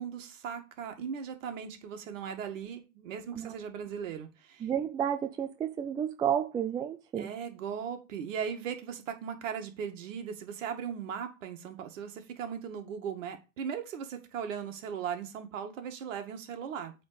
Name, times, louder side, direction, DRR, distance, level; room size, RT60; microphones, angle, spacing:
voice 1, 0.0-4.7 7.1-16.9, right 7 dB, 60° right, 2.1 m, -38 dB
voice 2, 4.6-7.3, right 9 dB, 10° right, 0.4 m, -31 dB
8.4 x 3.8 x 6.9 m
hypercardioid pair, 115°, 43 cm